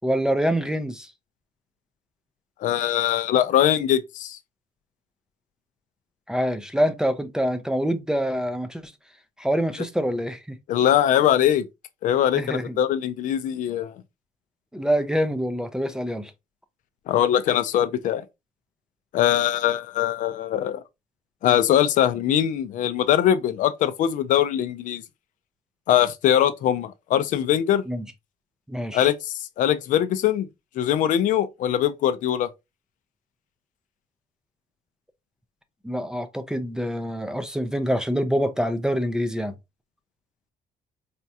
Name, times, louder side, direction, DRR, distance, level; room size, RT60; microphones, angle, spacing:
voice 1, 0.0-1.1 6.3-8.9 9.4-10.6 12.3-12.8 14.7-16.3 27.9-28.0 28.7-29.1 35.8-39.5, equal, 5° right, 0.4 m, -25 dB
voice 2, 2.6-4.4 10.7-11.7 12.0-13.9 17.1-18.2 19.1-20.8 21.4-25.0 25.9-27.8 28.9-30.5 30.8-32.5, left 11 dB, 65° left, 0.4 m, -22 dB
4.2 x 2.3 x 2.7 m
cardioid pair, 140°, 14 cm